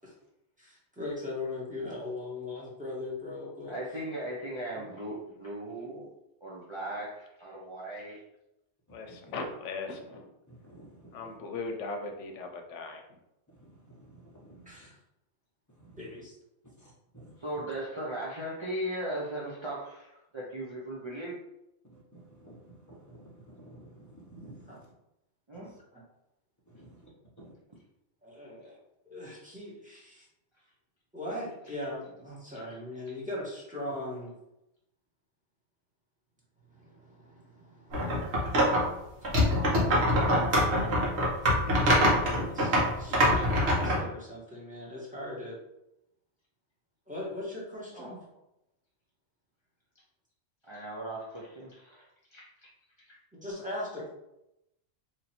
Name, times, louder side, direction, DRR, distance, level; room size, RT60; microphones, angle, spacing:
voice 1, 0.6-3.8 4.7-4.9 14.6-14.9 16.0-16.3 24.7-24.8 25.9-26.0 28.2-28.8 29.0-30.3 31.1-34.3 36.7-38.8 39.2-39.6 41.5-45.5 47.1-48.2 53.3-54.1, left 2 dB, 5° right, -6 dB, 1.1 m, -40 dB
voice 2, 3.7-6.1 6.4-8.2 17.4-21.4 25.5-25.7 33.1-33.2 40.1-40.4 43.3-43.4 47.9-48.2 50.7-52.1 52.3-52.7 53.1-53.2, right 1 dB, 35° right, -5 dB, 0.5 m, -38 dB
voice 3, 8.9-10.3 11.1-13.0, left 3 dB, 90° left, 4 dB, 1.0 m, -38 dB
voice 4, 10.5-11.3 13.6-14.7 15.8-15.9 16.8-17.3 22.1-24.8 26.7-27.1 27.4-27.5, right 1 dB, 15° left, -3 dB, 0.9 m, -52 dB
sound 1, 37.9-38.9 39.2-44.0, equal, 70° right, 1.3 m, -24 dB
3.0 x 2.7 x 4.2 m, 0.87 s
omnidirectional pair, 1.2 m